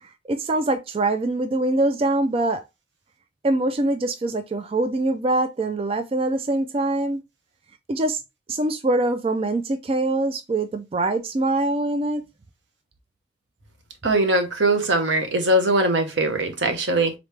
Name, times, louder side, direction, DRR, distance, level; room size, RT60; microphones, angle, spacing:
voice 1, 0.0-2.6 3.4-7.2 7.9-8.2 8.5-12.2, right 2 dB, 30° right, 0.3 m, -23 dB
voice 2, 14.0-17.1, right 1 dB, 85° right, 1.1 m, -21 dB
3.9 x 3.2 x 3.2 m
head